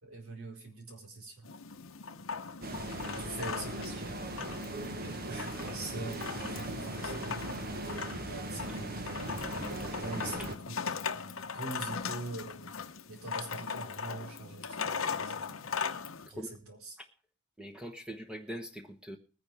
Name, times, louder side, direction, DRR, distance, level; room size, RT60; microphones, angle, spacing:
voice 1, 0.0-1.5 3.1-12.8 13.1-15.5 16.3-17.0, right 3 dB, 85° right, 1 dB, 4.4 m, -44 dB
sound 1, 1.4-16.3, left 5 dB, 70° left, 0.9 m, -39 dB
sound 2, 2.6-10.6, right 1 dB, 45° right, 1.2 m, -39 dB
voice 2, 17.6-19.2, equal, 5° right, 3 dB, 1.1 m, -42 dB
20.5 x 9.9 x 3.5 m, 0.38 s
head